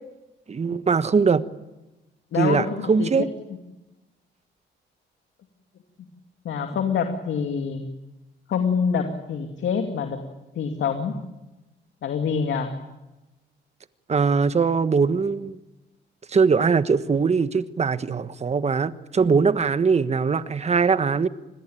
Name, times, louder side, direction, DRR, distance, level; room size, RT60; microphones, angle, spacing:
voice 1, 0.5-1.4 2.4-3.3 14.1-15.6 16.3-21.3, right 5 dB, 35° right, 13 dB, 1.3 m, -21 dB
voice 2, 2.3-3.1 6.4-7.8 8.5-10.2 10.6-11.1 12.0-12.7, left 6 dB, 70° left, 5 dB, 2.6 m, -26 dB
27.0 x 21.0 x 9.1 m, 1.0 s
cardioid pair, 90°, 20 cm